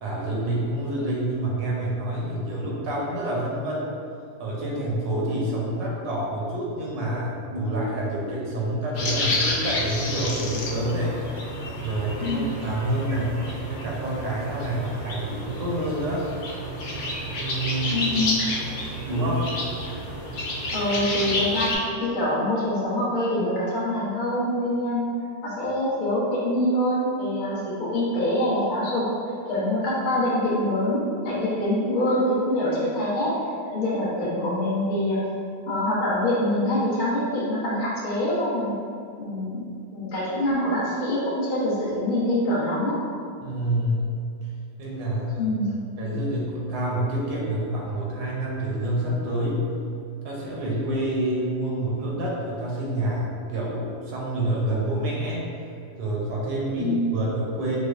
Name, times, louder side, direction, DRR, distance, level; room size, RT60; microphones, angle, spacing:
voice 1, 0.0-3.9 4.4-11.2 11.8-13.4 13.7-16.3 17.4-18.1 19.1-19.5 43.4-44.1 44.8-45.5 46.0-49.6 50.2-55.4 56.0-57.8, right 1 dB, 80° right, -4 dB, 1.4 m, -27 dB
sound 1, 9.0-21.8, left 1 dB, 85° left, 1.3 m, -30 dB
voice 2, 17.9-18.3 20.7-25.1 25.4-29.1 29.5-33.3 33.7-35.2 35.7-38.8 39.2-39.6 39.9-43.0 45.4-45.7 56.8-57.2, left 1 dB, 60° left, -7 dB, 0.5 m, -25 dB
4.8 x 2.1 x 2.3 m, 2.4 s
omnidirectional pair, 2.0 m